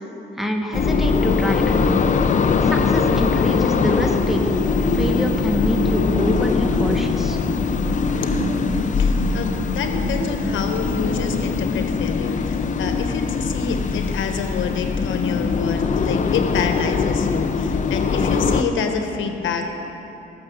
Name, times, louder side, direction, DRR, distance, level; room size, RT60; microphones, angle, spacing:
voice 1, 0.4-2.0 2.6-7.4, equal, ahead, 2 dB, 1.5 m, -25 dB
sound 1, 0.7-18.6, left 5 dB, 40° left, 0.7 m, -21 dB
sound 2, 4.6-11.5, right 3 dB, 65° right, 2.6 m, -29 dB
voice 2, 9.0-19.8, left 5 dB, 75° left, 5 dB, 1.3 m, -27 dB
15.0 x 6.8 x 7.1 m, 3.0 s
cardioid pair, 90°, 20 cm